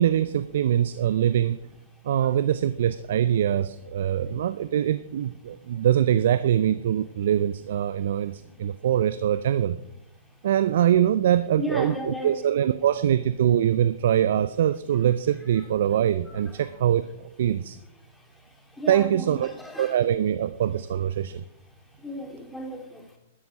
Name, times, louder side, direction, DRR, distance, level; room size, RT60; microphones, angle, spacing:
voice 1, 0.0-1.6 2.0-9.8 10.4-17.8 18.9-19.5 19.8-21.4, right 10 dB, 60° right, 14 dB, 0.5 m, -23 dB
voice 2, 11.6-12.4 15.4-15.5 16.4-16.5 18.4-20.0 22.0-23.0, left 1 dB, 5° left, 2 dB, 3.0 m, -35 dB
13.0 x 11.5 x 5.2 m, 0.86 s
hypercardioid pair, 115°, 0 cm